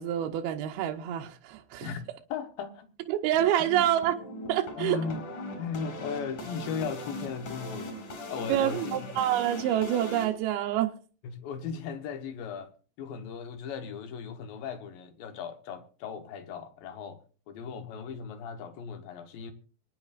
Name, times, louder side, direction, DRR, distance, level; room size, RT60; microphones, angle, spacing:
voice 1, 0.0-1.9 3.1-4.2 4.5-5.0 8.5-10.9, right 11 dB, 75° right, 2.5 m, -27 dB
voice 2, 2.3-2.9 3.6-3.7 4.8-5.2 5.6-8.0 8.3-8.8 11.2-12.7 13.0-17.2 17.5-19.5, left 6 dB, 70° left, 2.6 m, -37 dB
sound 1, 3.4-10.2, left 1 dB, 50° left, 5.4 m, -40 dB
24.0 x 10.0 x 2.5 m
omnidirectional pair, 5.0 m